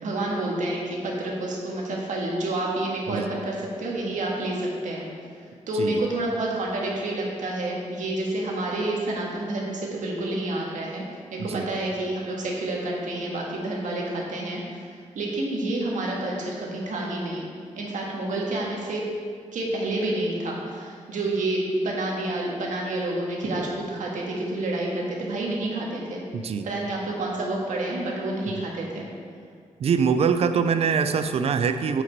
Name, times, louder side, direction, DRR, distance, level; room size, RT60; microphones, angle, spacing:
voice 1, 0.0-5.1 5.7-11.0 11.3-17.5 17.7-19.0 19.5-26.2 26.6-29.1, right 2 dB, 80° right, -2 dB, 1.6 m, -29 dB
voice 2, 26.3-26.7 29.8-32.0, right 6 dB, 55° right, 9 dB, 0.4 m, -24 dB
7.8 x 5.9 x 4.6 m, 2.1 s
wide cardioid pair, 160°, 13 cm